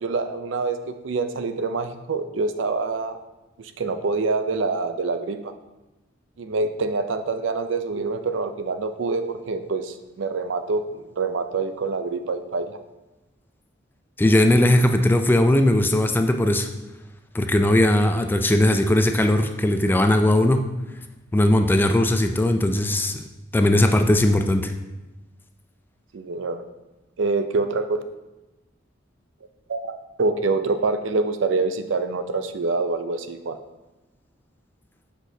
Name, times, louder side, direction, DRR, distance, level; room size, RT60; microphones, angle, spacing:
voice 1, 0.0-3.2 3.6-5.5 6.4-12.8 26.1-26.6 27.2-28.0 29.7-29.9 30.2-33.6, right 3 dB, 70° right, 8 dB, 0.5 m, -26 dB
voice 2, 14.2-16.7 17.3-20.6 21.3-23.2 23.5-24.7, left 1 dB, 10° left, 6 dB, 0.3 m, -19 dB
8.0 x 6.3 x 2.7 m, 1.0 s
head